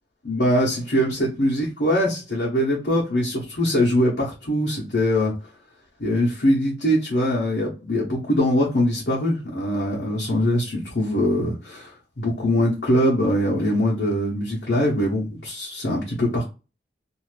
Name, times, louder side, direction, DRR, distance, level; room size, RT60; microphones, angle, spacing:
voice 1, 0.2-5.3 6.0-16.4, equal, 70° left, -5 dB, 0.9 m, -22 dB
2.6 x 2.4 x 3.2 m, 0.31 s
head